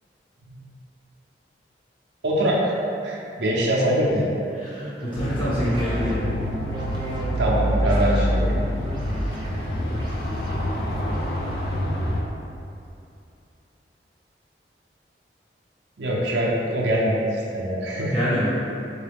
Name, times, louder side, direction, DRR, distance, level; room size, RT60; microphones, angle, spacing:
voice 1, 2.2-2.8 3.0-4.3 7.4-8.6 16.0-18.1, equal, 80° right, -4 dB, 0.6 m, -23 dB
voice 2, 4.5-6.3 18.1-18.5, equal, 30° left, -13 dB, 0.9 m, -26 dB
sound 1, 5.0-11.3, equal, 25° right, 0.4 m, -34 dB
sound 2, 5.1-12.2, equal, 60° left, 0.4 m, -26 dB
3.8 x 2.3 x 3.4 m, 2.6 s
head